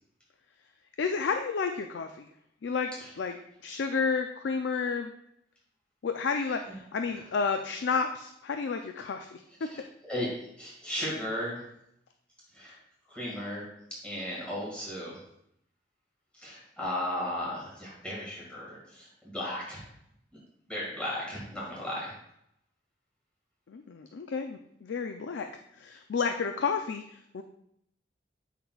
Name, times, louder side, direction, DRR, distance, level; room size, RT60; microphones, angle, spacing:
voice 1, 1.0-2.3 2.6-2.9 3.2-3.3 3.6-5.1 6.0-9.7 23.7-25.5 25.8-27.0 27.3-27.4, left 5 dB, 75° left, 6 dB, 0.4 m, -31 dB
voice 2, 9.7-11.6 12.5-12.7 13.1-13.6 14.0-15.2 16.3-19.8 20.7-22.1, left 1 dB, 5° left, -6 dB, 1.8 m, -35 dB
8.4 x 5.8 x 2.3 m, 0.76 s
head